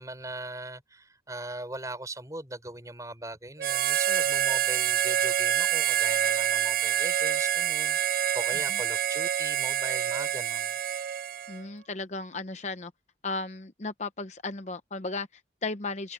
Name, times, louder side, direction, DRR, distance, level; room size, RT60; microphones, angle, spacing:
voice 1, 0.0-10.7, right 2 dB, 20° right, 6.8 m, -40 dB
Harmonica, 3.6-11.6, right 10 dB, 50° right, 0.4 m, -27 dB
voice 2, 11.5-12.9 13.2-16.1, left 3 dB, 40° left, 0.8 m, -35 dB
head